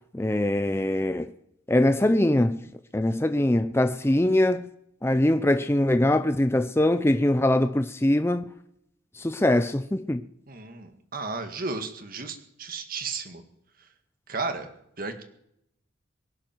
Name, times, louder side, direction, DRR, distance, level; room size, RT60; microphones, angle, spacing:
voice 1, 0.1-1.3 1.7-2.6 2.9-4.7 5.0-8.4 9.2-10.2, left 1 dB, 10° left, 0.5 m, -22 dB
voice 2, 10.5-13.4 14.3-14.7 15.0-15.2, right 4 dB, 45° right, 1.9 m, -34 dB
24.0 x 11.5 x 4.6 m
head